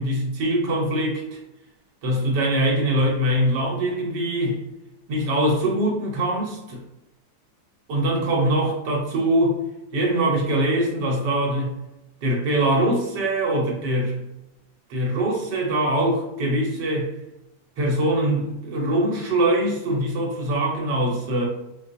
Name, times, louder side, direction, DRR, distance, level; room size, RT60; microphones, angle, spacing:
voice 1, 0.0-1.4 2.0-4.6 5.1-6.8 7.9-9.6 9.9-11.8 12.2-14.3 14.9-17.1 17.8-21.5, right 1 dB, 80° right, -1 dB, 1.5 m, -23 dB
4.1 x 2.4 x 2.5 m, 0.93 s
omnidirectional pair, 1.8 m